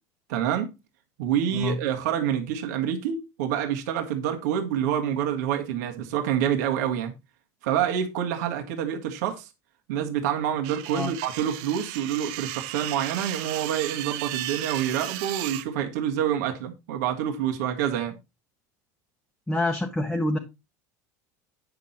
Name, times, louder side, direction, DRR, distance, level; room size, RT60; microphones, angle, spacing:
voice 1, 0.3-0.7 1.2-7.1 7.6-9.5 9.9-18.1, right 9 dB, 85° right, 1.7 m, -27 dB
sound 1, 10.6-15.6, right 15 dB, 55° right, 0.7 m, -35 dB
voice 2, 19.5-20.4, left 2 dB, 5° left, 0.8 m, -26 dB
9.5 x 6.2 x 4.2 m
cardioid pair, 175°, 9 cm